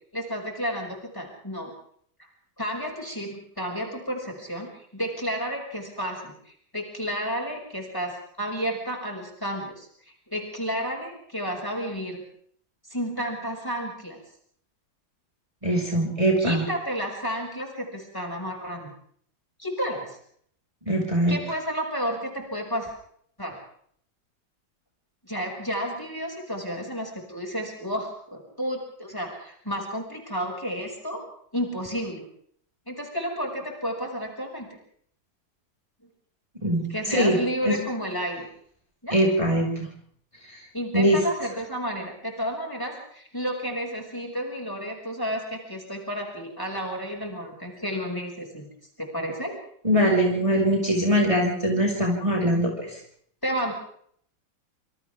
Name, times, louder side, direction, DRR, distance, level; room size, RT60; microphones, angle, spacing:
voice 1, 0.1-1.7 2.6-12.2 12.9-14.2 16.4-18.9 19.6-20.2 21.3-22.9 23.4-23.6 25.2-31.2 31.5-32.2 32.9-34.7 36.9-38.5 39.0-39.2 40.7-48.7 49.0-49.6 53.4-53.7, equal, 10° left, 1 dB, 6.4 m, -31 dB
voice 2, 15.6-16.6 20.9-21.4 36.6-37.4 37.7-37.8 39.1-39.7 40.9-41.2 49.8-53.0, equal, 15° right, -1 dB, 5.5 m, -22 dB
28.5 x 27.5 x 3.6 m, 0.63 s
omnidirectional pair, 2.0 m